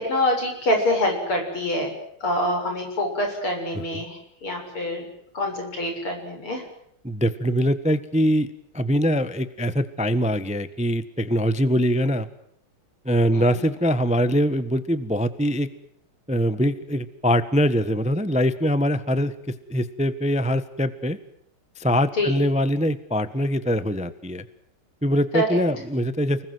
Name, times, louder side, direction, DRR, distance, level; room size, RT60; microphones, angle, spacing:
voice 1, 0.0-1.9 2.2-5.0 5.3-6.6 13.3-13.7 22.1-22.4 25.3-25.6, left 1 dB, 80° left, 3 dB, 8.0 m, -25 dB
voice 2, 7.0-8.5 8.7-12.3 13.0-15.7 16.3-19.3 19.7-21.2 21.8-24.4 25.0-26.4, equal, 5° right, 13 dB, 0.9 m, -23 dB
29.5 x 21.0 x 7.9 m, 0.72 s
omnidirectional pair, 2.3 m